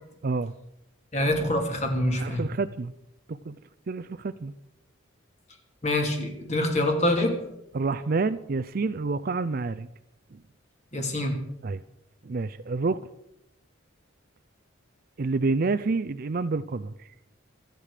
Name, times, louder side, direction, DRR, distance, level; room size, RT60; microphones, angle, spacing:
voice 1, 1.1-2.4 5.8-7.4 10.9-11.4, left 1 dB, 35° left, 3 dB, 2.9 m, -25 dB
voice 2, 2.2-2.9 3.3-3.6 3.9-4.5 7.7-9.9 11.6-11.8 12.2-13.0 15.2-17.1, right 3 dB, 45° right, 13 dB, 0.5 m, -28 dB
27.0 x 9.1 x 5.0 m, 0.84 s
head